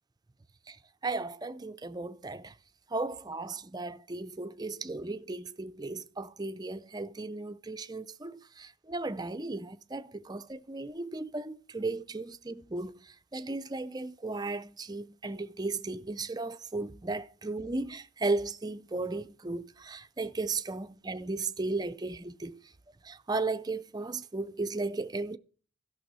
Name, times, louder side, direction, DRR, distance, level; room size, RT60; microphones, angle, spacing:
voice 1, 1.0-2.5 2.9-22.6 23.0-25.4, right 3 dB, 20° right, 0.5 m, -35 dB
13.0 x 6.3 x 6.2 m
head